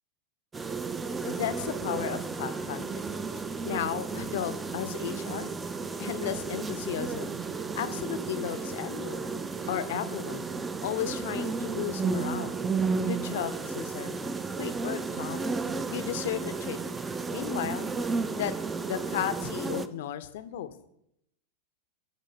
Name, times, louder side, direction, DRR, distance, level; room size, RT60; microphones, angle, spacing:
sound 1, 0.5-19.9, right 4 dB, 15° right, 0.3 m, -33 dB
voice 1, 1.2-2.9 3.6-5.5 6.0-7.3 7.8-9.2 9.7-10.5 10.8-12.6 13.1-14.2 14.6-15.5 15.9-16.8 17.3-17.9 18.4-18.6 18.8-20.7, left 11 dB, 55° left, 11 dB, 0.4 m, -34 dB
sound 2, 4.9-5.7 6.6-7.6 8.4-9.1 9.5-10.3, right 1 dB, 40° right, 1.4 m, -52 dB
7.6 x 3.1 x 4.1 m, 0.76 s
figure-of-eight pair, 90°, 0 cm